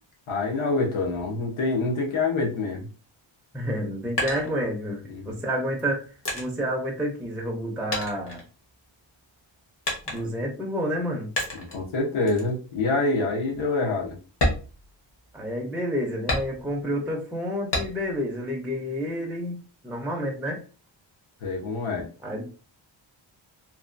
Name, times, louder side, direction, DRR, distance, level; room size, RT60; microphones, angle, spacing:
voice 1, 0.3-2.9 5.1-5.4 11.7-14.2 21.4-22.1, left 3 dB, 85° left, -1 dB, 1.0 m, -26 dB
voice 2, 3.5-6.0 6.3-8.4 10.1-11.3 15.3-20.6 22.2-22.4, equal, ahead, -1 dB, 0.4 m, -29 dB
sound 1, 4.0-5.1 5.8-7.6 7.9-9.1 9.8-10.5 11.4-11.8 12.3-12.5 13.0-13.1 13.5-13.7 14.3-15.5 16.3-16.9 17.7-18.3 18.7-19.5, left 1 dB, 60° left, 1.0 m, -31 dB
2.9 x 2.2 x 2.4 m, 0.36 s
wide cardioid pair, 170°, 47 cm